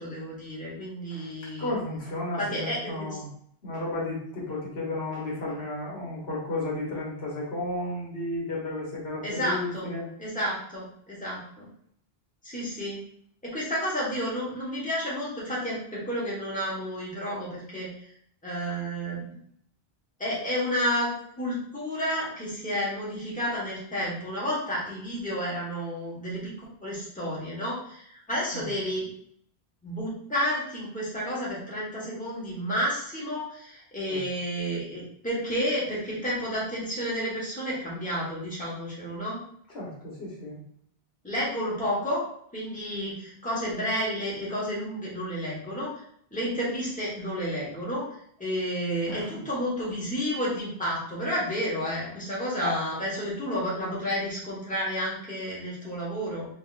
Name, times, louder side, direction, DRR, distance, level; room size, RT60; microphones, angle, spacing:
voice 1, 0.0-1.7 2.4-3.2 9.2-9.9 10.2-11.7 12.4-13.0 13.4-18.1 18.4-19.3 20.2-29.0 29.8-39.4 41.2-42.2 42.5-45.9 46.3-48.0 48.4-56.5, equal, 10° left, -7 dB, 1.2 m, -31 dB
voice 2, 1.6-3.3 3.6-10.1 28.5-28.6 34.1-34.2 39.7-40.6 49.1-49.3 52.6-52.7, left 2 dB, 80° left, -5 dB, 1.5 m, -33 dB
3.8 x 3.5 x 2.5 m, 0.67 s
omnidirectional pair, 1.1 m